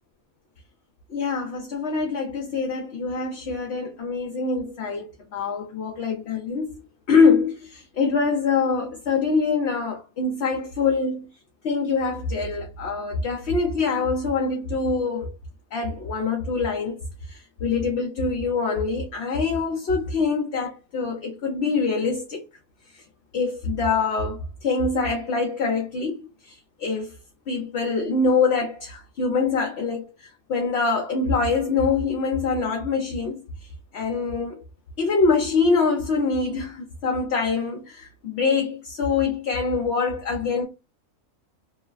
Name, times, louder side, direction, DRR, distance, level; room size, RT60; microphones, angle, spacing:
voice 1, 1.1-6.7 7.1-11.3 11.6-15.3 15.7-17.0 17.3-22.4 22.9-23.0 23.3-27.1 27.5-33.4 33.9-34.6 35.0-40.6, left 4 dB, 60° left, 0.8 m, -24 dB
3.0 x 2.1 x 2.3 m
omnidirectional pair, 1.4 m